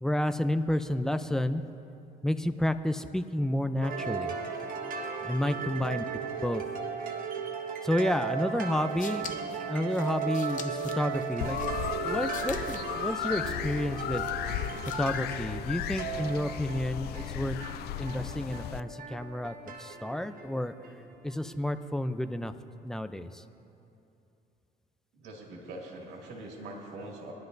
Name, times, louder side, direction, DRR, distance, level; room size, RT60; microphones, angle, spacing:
voice 1, 0.0-1.6 2.2-4.3 5.2-6.0 6.4-6.6 7.8-14.2 15.0-17.6 18.0-20.7 21.2-22.5 22.8-23.4, left 1 dB, 5° left, 10 dB, 0.5 m, -30 dB
voice 2, 1.0-1.4 5.5-6.0 25.1-27.3, right 2 dB, 85° right, -1 dB, 2.3 m, -44 dB
sound 1, 3.8-21.7, right 6 dB, 55° right, 1.5 m, -36 dB
sound 2, 8.7-15.3, left 8 dB, 50° left, 0.9 m, -47 dB
sound 3, 11.4-18.8, left 13 dB, 70° left, 0.4 m, -35 dB
21.5 x 11.5 x 2.6 m, 2.8 s
cardioid pair, 110°, 17 cm